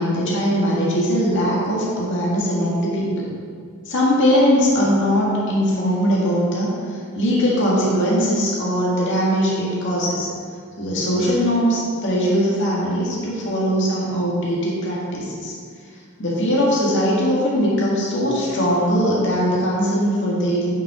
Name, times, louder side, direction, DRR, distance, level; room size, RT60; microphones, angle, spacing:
voice 1, 0.0-3.3 3.9-10.3 10.8-15.5 16.2-20.7, equal, 60° left, -5 dB, 1.7 m, -20 dB
8.6 x 6.0 x 3.6 m, 2.1 s
head